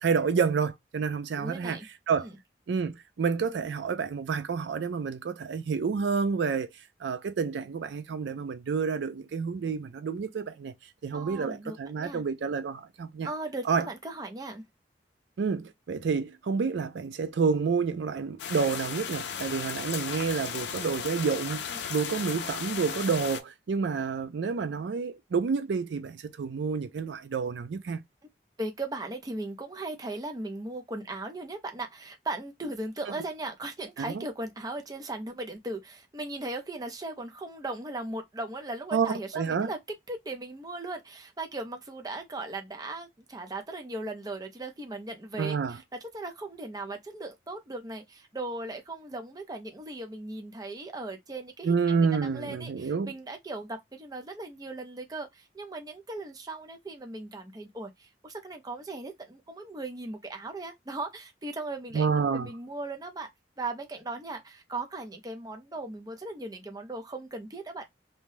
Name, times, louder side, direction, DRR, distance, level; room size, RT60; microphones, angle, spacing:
voice 1, 0.0-1.8 2.1-2.3 2.7-6.7 7.0-10.7 11.0-13.3 13.7-13.9 15.4-28.0 34.0-34.2 38.9-39.7 45.4-45.8 51.6-53.1 61.9-62.5, right 5 dB, 80° right, 0.4 m, -29 dB
voice 2, 1.4-1.9 2.2-2.4 11.1-12.2 13.2-14.6 21.7-21.8 28.6-39.8 40.1-45.8 46.1-62.1 62.3-63.3 63.6-67.9, right 2 dB, 20° right, 0.5 m, -38 dB
sound 1, 18.4-23.4, left 7 dB, 75° left, 0.4 m, -35 dB
2.7 x 2.1 x 3.1 m
head